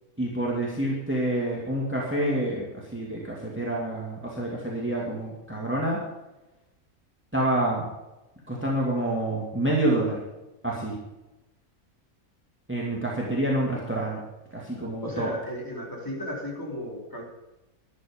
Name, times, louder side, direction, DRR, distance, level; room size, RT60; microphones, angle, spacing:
voice 1, 0.2-6.0 7.3-7.9 8.5-10.2 10.6-11.0 12.7-14.2 14.5-15.3, right 1 dB, 10° right, -3 dB, 2.6 m, -27 dB
voice 2, 15.0-17.2, left 1 dB, 15° left, -3 dB, 3.7 m, -34 dB
12.5 x 12.0 x 5.4 m, 0.99 s
omnidirectional pair, 1.6 m